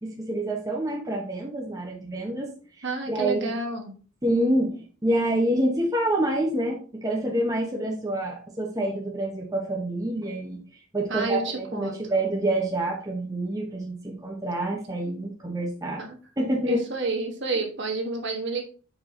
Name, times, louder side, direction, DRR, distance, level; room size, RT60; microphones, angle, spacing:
voice 1, 0.0-2.5 2.8-3.5 4.2-10.6 10.9-16.0 16.4-16.8, right 1 dB, 15° right, -1 dB, 1.0 m, -27 dB
voice 2, 2.8-3.9 11.1-12.0 16.0-16.2 16.7-18.6, right 3 dB, 55° right, 2 dB, 1.4 m, -29 dB
6.1 x 4.9 x 3.7 m, 0.37 s
head